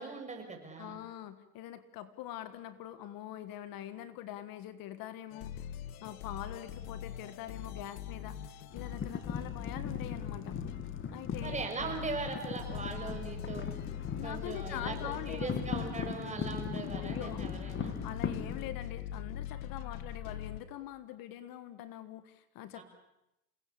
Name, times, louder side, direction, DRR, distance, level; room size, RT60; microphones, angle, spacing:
voice 1, 0.0-1.0 11.4-13.7 14.2-18.0 22.7-22.8, right 4 dB, 15° right, 3 dB, 6.3 m, -40 dB
voice 2, 0.8-5.5 6.0-10.6 11.1-11.6 14.1-15.6 17.0-17.4 18.0-22.8, left 12 dB, 50° left, 12 dB, 1.7 m, -44 dB
sound 1, 5.3-20.6, left 10 dB, 70° left, 1.8 m, -42 dB
sound 2, 8.7-18.7, left 6 dB, 30° left, 2.2 m, -39 dB
29.0 x 18.0 x 8.6 m, 0.89 s
supercardioid pair, 125°, 43 cm